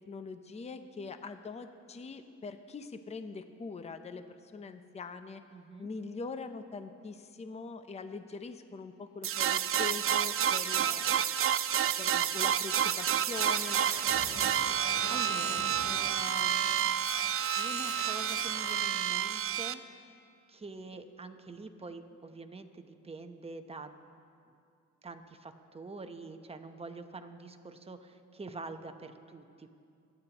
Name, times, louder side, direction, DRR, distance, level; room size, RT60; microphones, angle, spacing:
voice 1, 0.1-5.4 5.8-11.3 12.0-13.9 14.3-14.5, left 4 dB, 20° left, 9 dB, 0.6 m, -43 dB
voice 2, 5.5-5.9 14.6-17.0 17.5-20.2 20.5-23.9 25.0-29.7, right 3 dB, 20° right, 7 dB, 0.9 m, -46 dB
sound 1, 9.2-19.7, right 9 dB, 45° right, 0.5 m, -29 dB
sound 2, 13.2-18.8, left 2 dB, 55° left, 3.5 m, -44 dB
24.0 x 9.9 x 3.0 m, 2.5 s
cardioid pair, 90°, 30 cm